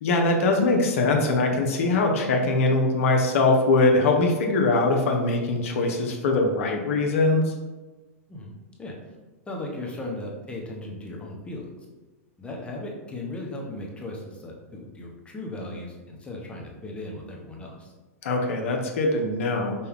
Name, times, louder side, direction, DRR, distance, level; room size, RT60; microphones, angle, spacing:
voice 1, 0.0-7.5 18.2-19.7, left 2 dB, 65° left, 2 dB, 0.7 m, -22 dB
voice 2, 8.8-9.1 9.5-11.7 12.4-17.9, left 1 dB, 15° left, -1 dB, 0.9 m, -37 dB
5.4 x 2.2 x 3.5 m, 1.2 s
hypercardioid pair, 110°, 8 cm